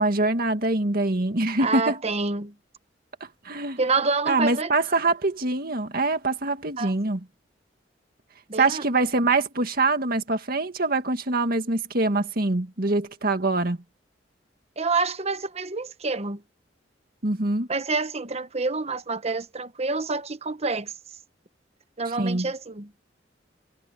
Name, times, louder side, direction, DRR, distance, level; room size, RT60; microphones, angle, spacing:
voice 1, 0.0-2.0 3.4-3.8 4.3-7.3 8.6-13.8 17.2-17.7 22.2-22.5, right 2 dB, 55° right, 2.0 m, -24 dB
voice 2, 1.6-2.5 3.8-4.7 6.8-6.9 8.5-8.8 14.8-16.4 17.7-20.9 22.0-22.9, right 3 dB, 35° right, 1.1 m, -27 dB
head